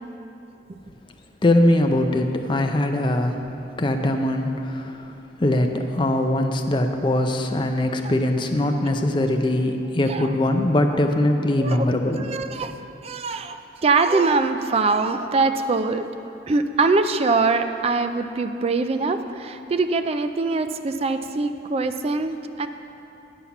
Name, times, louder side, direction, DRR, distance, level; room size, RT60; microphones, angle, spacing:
voice 1, 1.4-3.4 3.8-5.0 5.4-12.3, left 1 dB, 25° left, 5 dB, 0.5 m, -21 dB
voice 2, 11.6-11.9 12.2-12.7 13.0-16.1 16.5-22.3 22.6-22.7, right 3 dB, 30° right, 9 dB, 0.3 m, -23 dB
10.0 x 5.6 x 5.9 m, 2.9 s
head